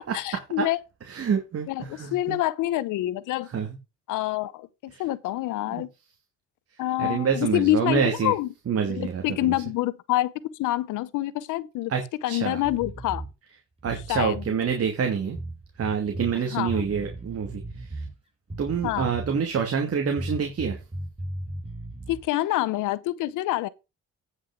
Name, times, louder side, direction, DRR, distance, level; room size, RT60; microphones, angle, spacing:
voice 1, 0.1-0.8 1.7-3.5 4.1-5.9 6.8-8.5 8.8-11.9 12.2-13.2 14.1-14.4 16.4-16.9 18.8-19.1 22.1-23.7, left 15 dB, 90° left, 0.8 m, -27 dB
voice 2, 1.1-2.4 3.5-3.7 4.9-5.0 5.7-5.8 7.0-8.3 8.7-9.5 11.9-12.6 13.8-15.4 15.8-18.0 18.6-20.8, right 6 dB, 50° right, 2.8 m, -27 dB
sound 1, 12.6-13.3 13.8-14.6 15.3-16.3 16.7-18.1 18.5-19.5 20.2-22.2, right 1 dB, 20° right, 6.1 m, -36 dB
9.7 x 6.3 x 5.1 m
cardioid pair, 90°, 30 cm